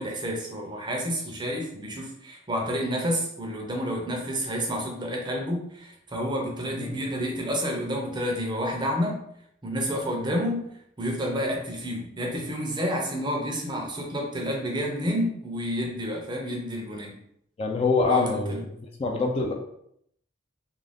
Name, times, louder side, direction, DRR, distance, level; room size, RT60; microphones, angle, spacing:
voice 1, 0.0-9.2 9.6-10.7 11.0-17.2 18.1-18.6, equal, 25° right, 0 dB, 0.5 m, -29 dB
voice 2, 17.6-19.5, left 4 dB, 30° left, 1 dB, 0.3 m, -25 dB
2.5 x 2.3 x 3.3 m, 0.72 s
head